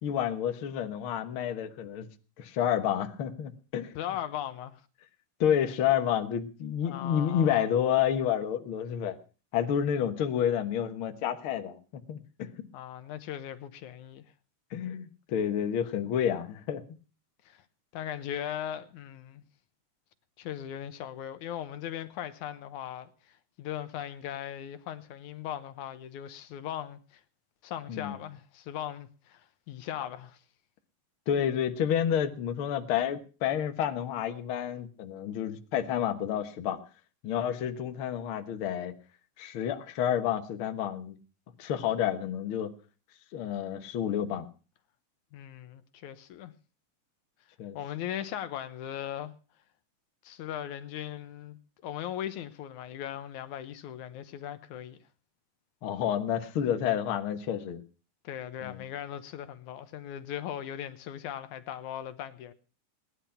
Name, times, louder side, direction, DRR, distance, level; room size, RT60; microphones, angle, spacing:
voice 1, 0.0-2.1 2.4-3.9 5.4-9.2 9.5-12.5 14.7-16.8 27.9-28.2 31.3-36.8 37.2-38.9 39.4-41.2 41.6-42.7 43.3-44.5 47.6-47.8 55.8-57.8 58.6-58.8, left 9 dB, 55° left, 1.8 m, -29 dB
voice 2, 4.0-4.8 6.8-7.7 12.7-14.2 17.5-17.6 17.9-19.4 20.4-27.2 27.6-30.4 45.3-46.5 47.7-49.3 50.2-55.0 58.2-62.5, left 10 dB, 80° left, 2.4 m, -38 dB
18.0 x 11.0 x 5.7 m
omnidirectional pair, 3.5 m